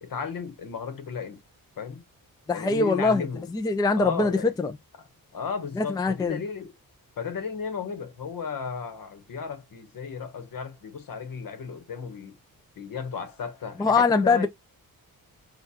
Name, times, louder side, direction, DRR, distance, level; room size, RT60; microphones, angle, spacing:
voice 1, 0.0-1.4 1.8-2.0 2.5-3.4 3.9-4.5 5.0-6.7 7.2-12.4 12.8-14.5, left 6 dB, 65° left, 1.0 m, -35 dB
voice 2, 2.5-3.3 3.5-4.7 5.8-6.4 13.8-14.5, left 4 dB, 10° left, 0.4 m, -23 dB
6.6 x 2.4 x 2.8 m
wide cardioid pair, 170°, 37 cm